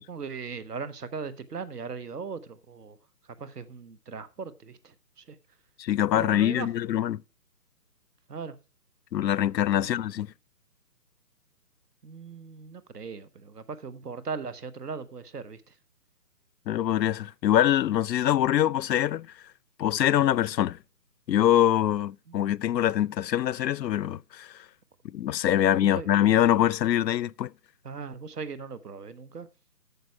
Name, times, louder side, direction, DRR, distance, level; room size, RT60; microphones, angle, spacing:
voice 1, 0.1-3.0 3.4-5.4 6.1-6.7 8.3-8.5 9.7-9.9 12.0-15.6 22.3-22.6 25.5-26.1 27.8-29.5, right 5 dB, 70° right, 1.2 m, -39 dB
voice 2, 5.8-7.2 9.1-10.3 16.7-19.3 19.8-20.8 21.3-24.5 25.1-27.5, left 11 dB, 90° left, 0.5 m, -24 dB
9.1 x 6.9 x 4.7 m
hypercardioid pair, 165°, 49 cm